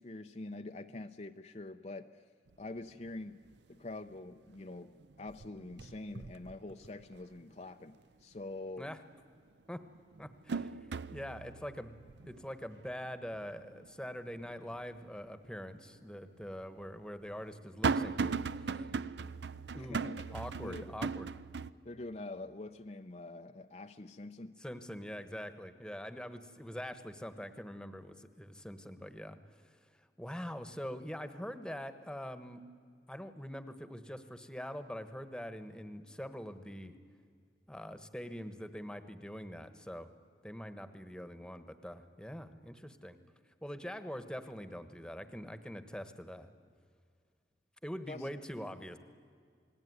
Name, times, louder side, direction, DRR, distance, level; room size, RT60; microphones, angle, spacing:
voice 1, 0.0-2.2 2.6-3.4 3.7-8.9 19.7-20.2 20.6-20.9 21.8-24.6 48.1-48.3, left 2 dB, 40° left, 6 dB, 0.6 m, -45 dB
sound 1, 2.5-2.6 3.0-3.5 3.9-4.7 5.0-7.3 7.7-7.8 9.2-9.3 9.8-15.0 15.4-15.5 16.4-21.7, right 4 dB, 80° right, 0.6 m, -38 dB
voice 2, 10.2-12.0 12.3-18.9 19.7-21.3 24.6-29.4 30.0-32.7 33.1-37.0 37.7-40.1 40.4-43.2 43.6-46.5 47.8-49.0, equal, 5° left, 10 dB, 1.2 m, -44 dB
28.5 x 19.5 x 9.6 m, 2.2 s
head